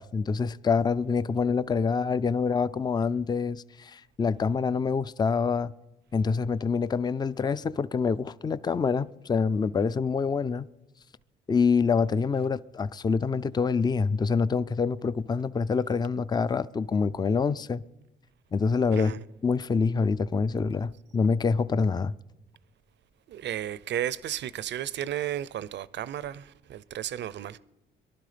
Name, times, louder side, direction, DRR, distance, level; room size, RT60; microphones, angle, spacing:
voice 1, 0.0-5.7 6.1-10.7 11.5-17.8 18.5-19.1 19.4-22.1, left 5 dB, 20° left, 0.4 m, -26 dB
voice 2, 18.9-19.2 23.3-27.6, right 11 dB, 65° right, 0.6 m, -33 dB
22.5 x 11.5 x 5.1 m
cardioid pair, 90°, 20 cm